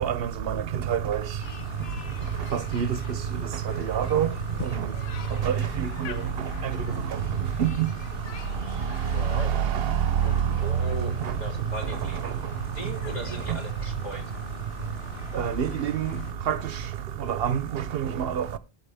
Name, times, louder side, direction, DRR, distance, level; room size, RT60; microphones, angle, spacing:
voice 1, 0.0-0.6 0.9-1.2 2.5-3.0 3.9-4.3 5.4-5.5 7.6-7.9 9.5-9.9 15.3-16.1 16.5-16.6 17.3-18.4, right 9 dB, 70° right, 0.9 m, -26 dB
sound 1, 1.4-16.3, left 7 dB, 85° left, 1.1 m, -41 dB
voice 2, 9.1-9.5 10.2-11.1 11.4-12.4 12.7-14.2, right 1 dB, 45° left, 3.1 m, -38 dB
16.5 x 5.9 x 3.3 m
omnidirectional pair, 1.0 m